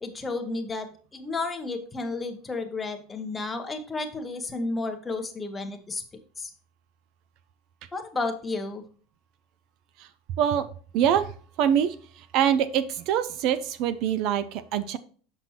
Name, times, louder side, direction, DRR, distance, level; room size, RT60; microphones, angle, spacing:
voice 1, 0.0-6.0 6.4-6.5 7.9-8.8, left 3 dB, 15° left, 6 dB, 0.9 m, -32 dB
voice 2, 10.4-10.7 10.9-15.0, right 9 dB, 50° right, 14 dB, 0.5 m, -25 dB
7.0 x 6.0 x 2.8 m, 0.43 s
supercardioid pair, 150°, 0 cm